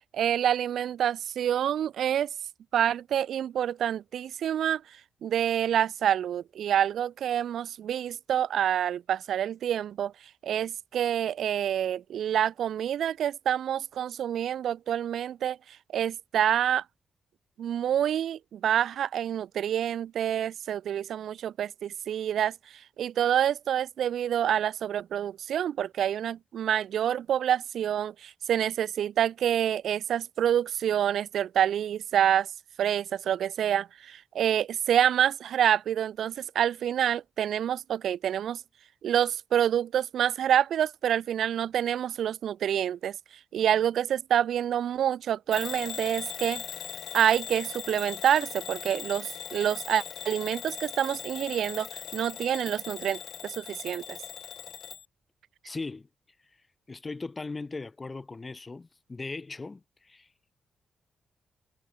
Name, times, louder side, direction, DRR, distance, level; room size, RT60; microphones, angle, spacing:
voice 1, 0.1-2.3 2.7-4.8 5.2-10.1 10.4-15.6 15.9-16.8 17.6-22.5 23.0-32.5 32.8-38.6 39.0-43.2 43.5-46.6 47.1-54.2, right 10 dB, 80° right, 0.5 m, -27 dB
Bell / Alarm, 45.5-55.1, left 9 dB, 75° left, 0.6 m, -40 dB
voice 2, 55.6-56.1 56.9-60.3, left 3 dB, 25° left, 0.4 m, -38 dB
cardioid pair, 130°, 0 cm